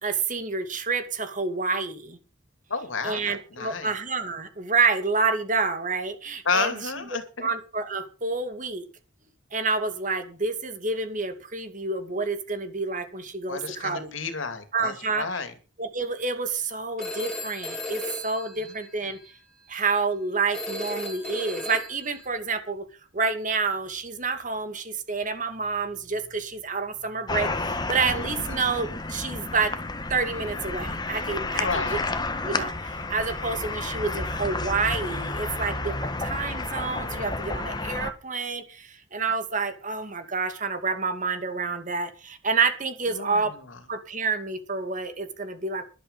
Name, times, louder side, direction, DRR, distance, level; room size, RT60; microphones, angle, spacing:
voice 1, 0.0-2.2 3.0-6.7 7.4-8.8 9.5-14.1 14.7-15.2 15.8-19.2 19.7-22.8 23.1-29.7 30.1-32.0 32.4-43.5 43.9-45.9, right 4 dB, 40° right, 2.4 m, -28 dB
voice 2, 2.7-3.9 6.4-7.5 13.5-15.5 18.6-18.8 28.5-28.6 31.5-32.0 43.1-43.8, left 4 dB, 80° left, 2.7 m, -31 dB
Telephone, 17.0-19.3 20.5-22.3, left 1 dB, 5° left, 5.4 m, -36 dB
sound 1, 27.3-38.1, left 2 dB, 20° left, 1.3 m, -31 dB
13.5 x 11.5 x 5.5 m
head